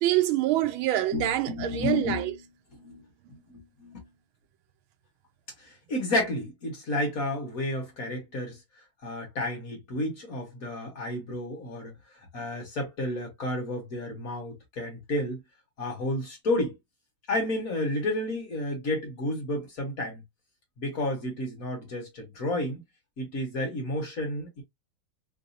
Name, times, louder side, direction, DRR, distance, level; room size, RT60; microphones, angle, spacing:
voice 1, 0.0-2.3, right 14 dB, 85° right, 1.4 m, -25 dB
voice 2, 1.1-2.4 2.7-3.0 3.3-4.1 5.6-8.6 9.0-11.9 12.3-15.4 15.8-16.8 17.3-20.2 20.8-22.8 23.2-24.6, left 1 dB, 45° left, 1.6 m, -31 dB
3.9 x 2.8 x 2.6 m
omnidirectional pair, 2.2 m